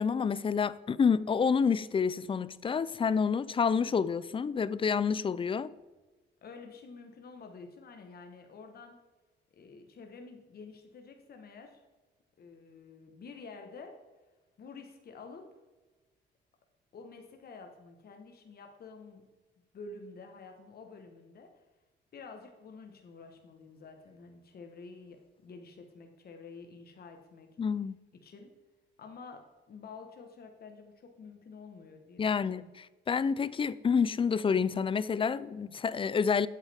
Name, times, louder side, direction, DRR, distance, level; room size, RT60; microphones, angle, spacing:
voice 1, 0.0-5.7 27.6-28.0 32.2-36.5, left 6 dB, 25° left, 0.4 m, -28 dB
voice 2, 6.4-9.0 9.5-11.8 12.4-14.1 14.6-15.6 16.9-19.3 19.7-21.6 22.1-27.5 28.1-28.5 29.0-32.7, left 4 dB, 50° left, 1.2 m, -49 dB
8.3 x 8.2 x 3.5 m
cardioid pair, 90°, 20 cm